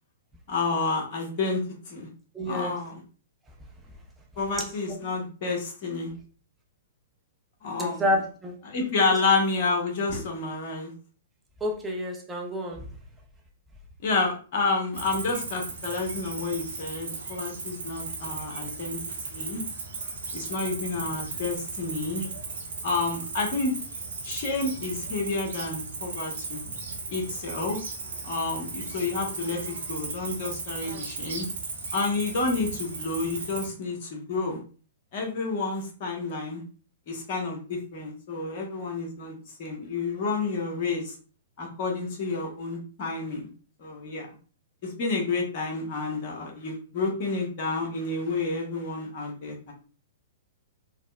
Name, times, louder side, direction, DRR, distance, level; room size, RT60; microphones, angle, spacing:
voice 1, 0.5-2.1 2.5-3.0 4.4-6.1 7.6-8.0 8.6-10.9 14.0-19.0 19.3-19.6 20.3-22.3 22.8-23.7 24.2-26.6 27.1-27.8 28.2-31.5 31.9-34.6 35.1-36.6 37.1-41.1 41.6-43.5 43.8-44.3 44.8-49.7, left 3 dB, 45° left, 0.9 m, -29 dB
voice 2, 2.3-2.8 7.8-8.5 11.6-12.9, left 1 dB, 10° right, 0.6 m, -29 dB
Cricket, 14.9-33.7, right 3 dB, 70° right, 0.9 m, -36 dB
3.9 x 2.0 x 2.2 m
figure-of-eight pair, 115°, 0 cm